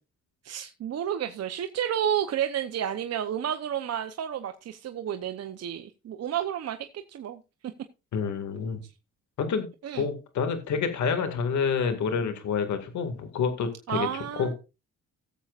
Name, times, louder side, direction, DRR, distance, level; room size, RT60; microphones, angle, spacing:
voice 1, 0.4-7.4 9.8-10.1 13.9-14.5, right 9 dB, 55° right, 8 dB, 0.9 m, -31 dB
voice 2, 8.1-8.8 9.4-9.7 9.9-14.1 14.4-14.5, left 6 dB, 70° left, 7 dB, 2.2 m, -28 dB
18.0 x 7.3 x 2.5 m, 0.28 s
cardioid pair, 90°, 30 cm